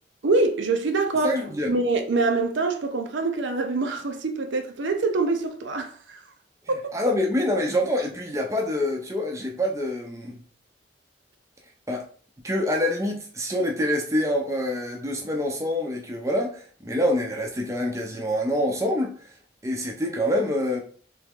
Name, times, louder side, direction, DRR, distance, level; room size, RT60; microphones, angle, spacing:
voice 1, 0.2-1.4 1.7-6.2 6.7-6.9, right 3 dB, 75° right, 0.6 m, -25 dB
voice 2, 1.2-1.7 6.9-10.4 11.9-12.0 12.4-19.1 19.6-20.8, left 1 dB, 15° right, 0.6 m, -26 dB
3.4 x 3.1 x 3.6 m
head